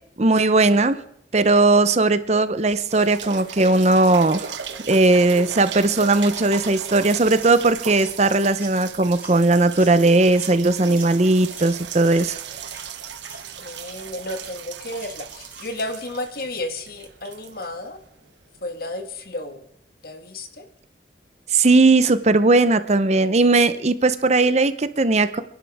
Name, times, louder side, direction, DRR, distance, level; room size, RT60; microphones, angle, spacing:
voice 1, 0.2-1.0 1.3-4.5 4.9-12.4 21.5-25.4, right 2 dB, 40° right, 12 dB, 0.7 m, -18 dB
sound 1, 2.6-18.3 19.0-19.1, right 7 dB, 90° right, 1.2 m, -37 dB
sound 2, 7.4-7.6 8.0-8.2 8.5-8.8 9.2-9.4 9.7-9.9 10.3-10.6 10.9-11.2 11.5-11.8 12.1-12.3 12.7-12.9 13.2-13.4 13.8-14.0 14.4-14.6 15.0-15.1 15.5-15.7, right 3 dB, 10° right, 4.3 m, -43 dB
voice 2, 13.6-18.0 18.6-19.7 20.0-20.7, left 1 dB, 55° left, 6 dB, 1.6 m, -32 dB
29.5 x 11.0 x 3.5 m, 0.72 s
head